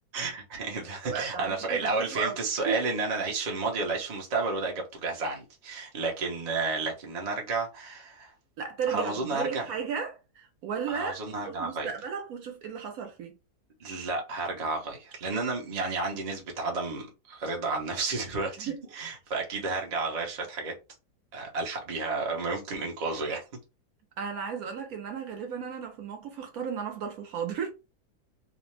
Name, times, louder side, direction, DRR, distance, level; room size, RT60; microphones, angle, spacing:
voice 1, 0.1-8.3 8.9-9.7 10.9-11.9 13.8-20.7 21.3-23.4, right 3 dB, 40° right, 0.6 m, -31 dB
voice 2, 1.0-2.4 2.7-2.8 8.6-11.1 11.4-13.3 18.6-18.8 24.2-27.7, right 7 dB, 65° right, 1.0 m, -34 dB
2.7 x 2.1 x 3.1 m
omnidirectional pair, 1.8 m